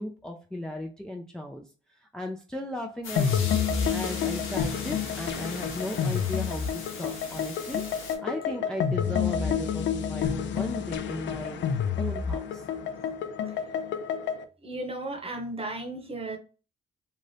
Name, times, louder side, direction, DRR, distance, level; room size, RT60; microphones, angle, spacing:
voice 1, 0.0-1.7 2.0-3.3 3.9-7.8 8.2-11.6 12.0-12.7, left 1 dB, 5° left, 0.4 m, -36 dB
sound 1, 3.0-8.2, left 4 dB, 90° left, 0.9 m, -39 dB
sound 2, 3.2-14.4, left 7 dB, 65° left, 0.5 m, -29 dB
voice 2, 14.6-16.4, right 2 dB, 30° right, 0.9 m, -35 dB
2.7 x 2.4 x 3.2 m
cardioid pair, 90°, 20 cm